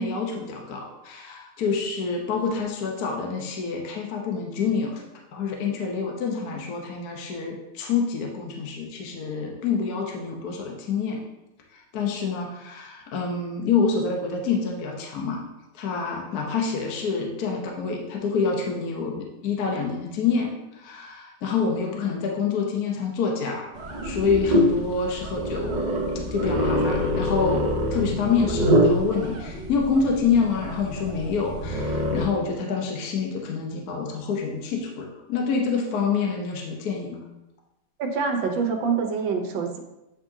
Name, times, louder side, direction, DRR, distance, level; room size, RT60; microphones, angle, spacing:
voice 1, 0.0-5.0 5.3-11.2 11.9-15.4 15.7-23.8 24.0-26.0 26.2-37.2, left 5 dB, 60° left, 0 dB, 1.2 m, -27 dB
sound 1, 23.7-32.3, equal, 45° right, 0.5 m, -25 dB
voice 2, 38.0-39.8, right 5 dB, 85° right, 4 dB, 1.6 m, -25 dB
8.6 x 5.2 x 2.7 m, 0.95 s
omnidirectional pair, 2.0 m